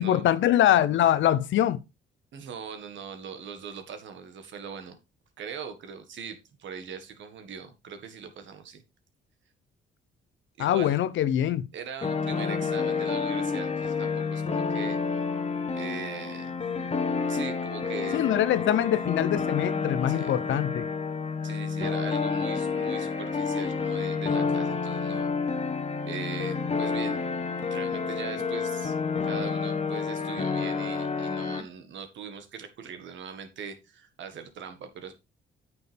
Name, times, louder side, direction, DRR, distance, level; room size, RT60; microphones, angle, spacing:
voice 1, 0.0-1.8 10.6-11.7 18.1-20.9, left 11 dB, 75° left, 0.8 m, -23 dB
voice 2, 2.3-5.0 5.4-8.8 10.6-11.0 11.7-15.0 15.7-16.6 17.3-18.3 20.1-20.4 21.4-25.3 26.1-27.2 27.7-29.0 29.2-35.1, right 6 dB, 70° right, 1.7 m, -40 dB
sound 1, 12.0-31.6, left 5 dB, 35° left, 1.4 m, -29 dB
8.7 x 6.4 x 3.5 m
cardioid pair, 90°, 20 cm